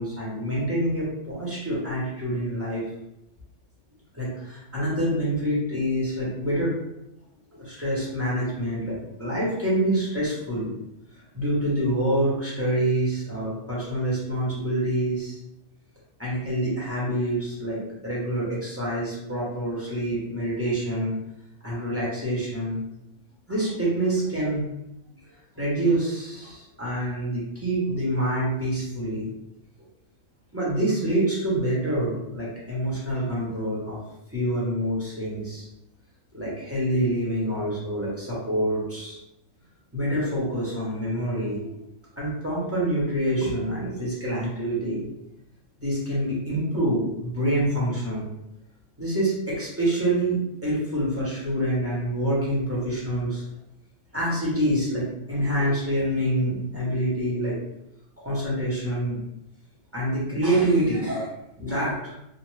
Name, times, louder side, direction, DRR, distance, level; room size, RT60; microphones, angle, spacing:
voice 1, 0.0-2.8 4.1-6.7 7.5-10.8 11.3-15.4 16.2-21.1 21.6-22.8 23.5-24.7 25.5-29.3 30.5-34.0 34.3-35.7 36.3-39.2 39.9-41.8 42.2-45.1 45.8-48.3 49.0-53.4 54.1-57.6 58.2-59.2 59.9-61.3 61.6-62.1, right 1 dB, 15° right, -7 dB, 0.7 m, -26 dB
2.6 x 2.1 x 3.2 m, 0.84 s
omnidirectional pair, 1.5 m